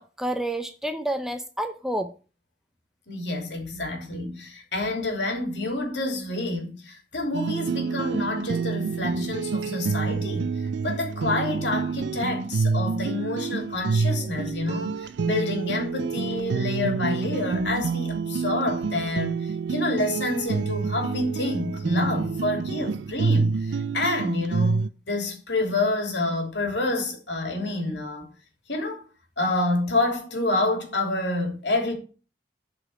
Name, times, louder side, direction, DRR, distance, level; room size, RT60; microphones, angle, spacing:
voice 1, 0.0-2.1, right 1 dB, 5° right, 0.7 m, -29 dB
voice 2, 3.1-10.5 10.8-19.3 19.7-23.5 23.9-24.8 25.1-28.2 28.7-29.0 29.4-31.9, left 2 dB, 85° left, 2.9 m, -28 dB
sound 1, 7.3-24.9, right 5 dB, 90° right, 0.4 m, -28 dB
8.3 x 5.1 x 6.0 m
head